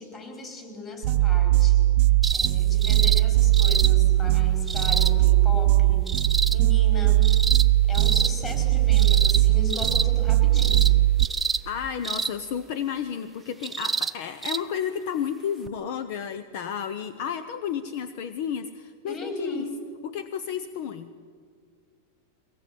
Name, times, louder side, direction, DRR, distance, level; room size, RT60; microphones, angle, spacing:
voice 1, 0.0-1.9 2.3-6.1 6.5-7.3 7.9-10.9 19.1-19.8, left 2 dB, 25° left, 2 dB, 4.8 m, -37 dB
sound 1, 1.0-11.2, right 16 dB, 55° right, 0.6 m, -20 dB
sound 2, 2.2-2.5 2.8-3.2 3.5-3.9 4.7-5.1 6.1-6.6 7.2-7.7 7.9-8.3 9.0-9.4 9.7-10.1 10.6-10.9 11.2-11.6 12.0-12.3 13.6-14.1 14.4-14.6 15.7-15.8, right 5 dB, 10° right, 0.6 m, -27 dB
voice 2, 11.7-19.6 20.0-21.1, left 8 dB, 55° left, 11 dB, 0.9 m, -32 dB
23.0 x 18.5 x 8.7 m, 2.2 s
supercardioid pair, 150°, 0 cm